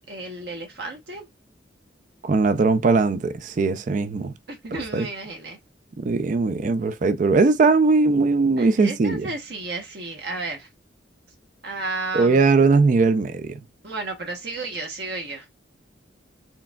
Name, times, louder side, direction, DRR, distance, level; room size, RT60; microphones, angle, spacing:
voice 1, 0.1-1.3 4.5-5.6 8.6-10.7 11.6-12.6 13.8-15.5, right 3 dB, 60° right, 0.9 m, -33 dB
voice 2, 2.2-4.3 4.9-5.1 6.0-9.3 12.1-13.6, right 4 dB, 45° right, 0.4 m, -20 dB
4.6 x 3.4 x 2.2 m
head